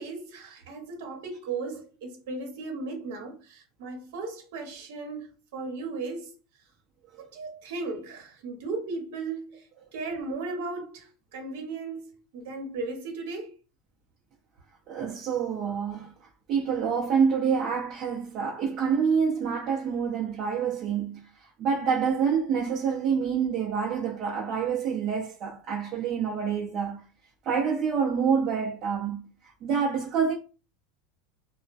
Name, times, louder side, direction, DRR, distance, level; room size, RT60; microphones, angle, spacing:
voice 1, 0.0-6.3 7.2-9.6 9.9-13.5, right 3 dB, 65° right, 0.9 m, -36 dB
voice 2, 14.9-16.1 16.5-21.2 21.6-27.0 27.5-29.2 29.6-30.3, right 6 dB, 30° right, 0.6 m, -27 dB
2.3 x 2.1 x 2.5 m
supercardioid pair, 180°, 0 cm